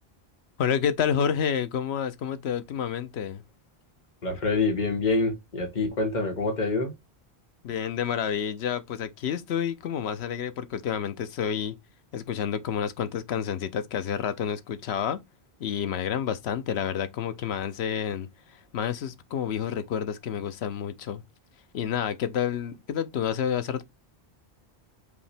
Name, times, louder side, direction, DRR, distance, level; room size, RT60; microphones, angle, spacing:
voice 1, 0.6-3.4 7.6-11.8 12.1-15.2 15.6-21.2 21.7-23.8, left 8 dB, 80° left, 0.9 m, -29 dB
voice 2, 4.2-6.9, left 3 dB, 45° left, 1.3 m, -26 dB
5.0 x 2.8 x 3.3 m
omnidirectional pair, 1.1 m